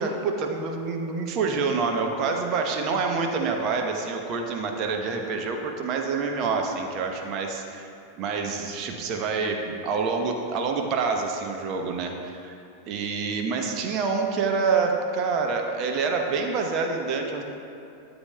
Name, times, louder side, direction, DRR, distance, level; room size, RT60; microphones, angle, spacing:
voice 1, 0.0-7.6 8.2-12.6 12.9-17.4, right 4 dB, 35° right, 3 dB, 0.9 m, -27 dB
12.5 x 8.0 x 2.2 m, 2.7 s
figure-of-eight pair, 90°, 0 cm